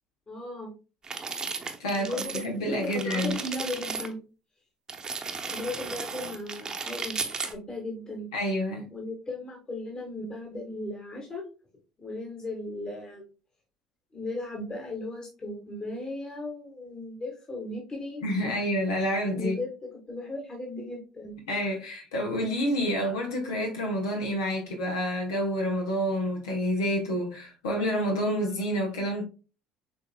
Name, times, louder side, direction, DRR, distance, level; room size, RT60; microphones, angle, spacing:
voice 1, 0.3-0.7 1.9-4.2 5.5-8.3 8.9-11.4 12.0-13.2 14.1-18.2 19.3-21.4, left 2 dB, 30° left, 1.6 m, -36 dB
sound 1, 1.0-2.5 2.7-4.1 4.9-7.5, right 4 dB, 30° right, 0.9 m, -35 dB
voice 2, 1.8-3.4 8.3-8.9 18.2-19.6 21.5-29.2, equal, 80° left, 1.1 m, -28 dB
6.7 x 3.5 x 2.2 m
hypercardioid pair, 65°, 2 cm